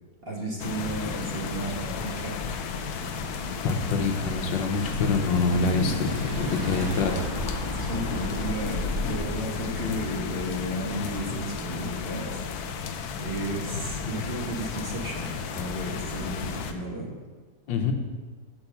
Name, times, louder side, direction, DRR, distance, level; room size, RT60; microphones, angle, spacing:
voice 1, 0.2-2.5 6.3-6.7 7.7-12.4 13.2-17.1, right 1 dB, 35° right, -2 dB, 1.3 m, -34 dB
sound 1, 0.6-16.7, left 5 dB, 65° left, 1.0 m, -33 dB
Car / Engine, 2.6-9.4, equal, 75° right, 3.4 m, -37 dB
voice 2, 3.6-6.1 6.4-7.3 17.7-17.9, left 4 dB, 90° left, 4 dB, 1.7 m, -25 dB
6.2 x 6.0 x 6.8 m, 1.3 s
omnidirectional pair, 2.0 m